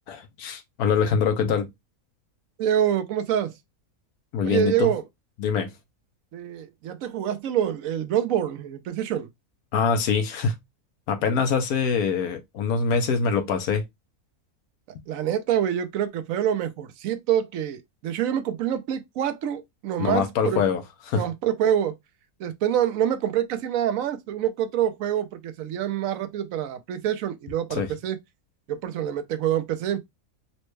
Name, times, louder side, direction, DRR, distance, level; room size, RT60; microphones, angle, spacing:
voice 1, 0.1-1.7 4.3-4.9 5.4-5.7 9.7-10.6 11.1-13.8 20.0-20.8 21.1-21.2 27.7-27.9, left 6 dB, 80° left, 1.2 m, -24 dB
voice 2, 2.6-3.6 4.4-5.0 6.3-9.3 15.1-20.6 21.2-21.9 22.4-28.2 28.7-30.0, right 10 dB, 70° right, 1.0 m, -26 dB
4.2 x 2.1 x 3.1 m
omnidirectional pair, 1.6 m